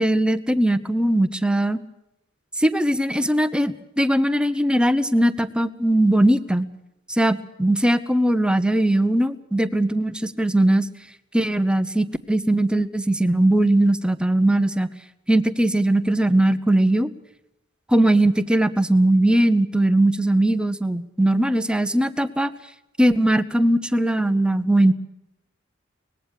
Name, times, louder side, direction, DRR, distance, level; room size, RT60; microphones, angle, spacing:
voice 1, 0.0-1.8 2.6-6.7 7.1-10.9 11.3-14.9 15.3-17.1 17.9-22.5 23.0-24.9, right 1 dB, 5° right, 11 dB, 0.9 m, -20 dB
23.5 x 20.0 x 6.6 m, 0.90 s
head